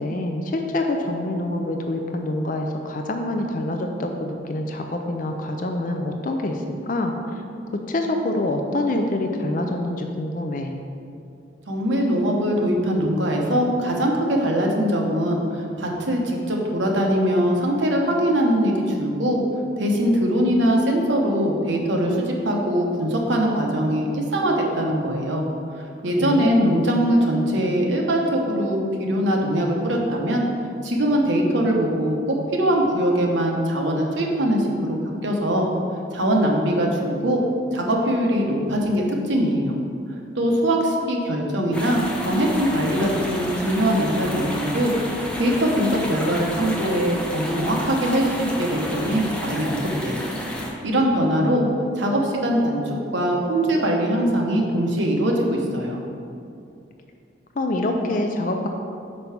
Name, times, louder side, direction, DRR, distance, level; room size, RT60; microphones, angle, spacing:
voice 1, 0.0-7.1 7.7-10.8 26.2-26.8 51.4-51.9 57.6-58.7, left 1 dB, 45° left, 4 dB, 0.4 m, -26 dB
voice 2, 11.7-19.4 19.8-25.5 25.7-30.5 30.8-35.0 35.2-35.7 36.1-37.4 37.7-39.7 40.3-44.9 45.4-50.2 50.8-51.7 52.0-56.0, equal, 75° right, 0 dB, 1.0 m, -22 dB
sound 1, 41.7-50.7, equal, 5° left, 0.7 m, -30 dB
5.4 x 4.5 x 5.9 m, 2.5 s
head